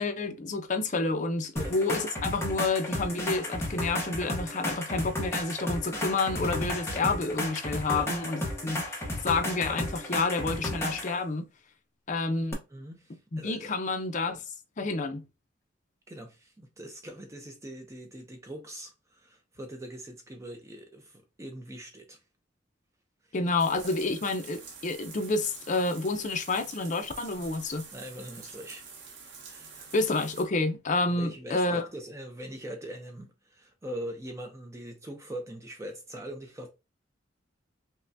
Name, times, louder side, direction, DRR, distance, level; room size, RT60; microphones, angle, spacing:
voice 1, 0.0-9.0 9.2-11.5 12.1-12.6 13.3-14.4 14.8-15.2 23.3-27.9 29.9-31.8, left 3 dB, 40° left, 0.6 m, -29 dB
sound 1, 1.6-11.2 12.5-12.6, left 1 dB, 15° left, 1.0 m, -33 dB
voice 2, 12.7-13.7 16.1-22.2 27.9-28.9 29.5-29.9 31.1-36.7, right 1 dB, 15° right, 0.6 m, -42 dB
sound 2, 23.6-30.5, right 5 dB, 90° right, 1.2 m, -47 dB
5.5 x 2.2 x 2.6 m
head